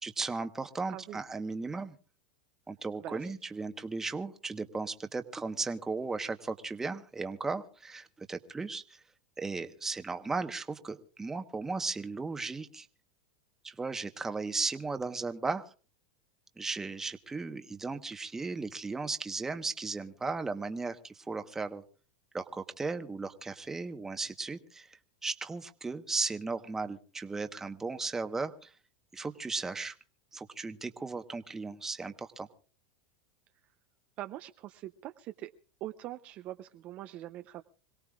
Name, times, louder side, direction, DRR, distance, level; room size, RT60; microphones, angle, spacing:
voice 1, 0.0-2.0 2.7-9.0 9.4-12.9 13.6-15.6 16.6-21.8 22.3-24.9 25.2-28.7 29.1-29.9 30.3-32.5, right 3 dB, 10° right, 8 dB, 1.1 m, -36 dB
voice 2, 0.9-1.2 3.0-3.3 34.2-35.5 35.8-37.6, right 14 dB, 45° right, 8 dB, 0.7 m, -42 dB
26.0 x 17.5 x 2.4 m, 0.38 s
hypercardioid pair, 115°, 3 cm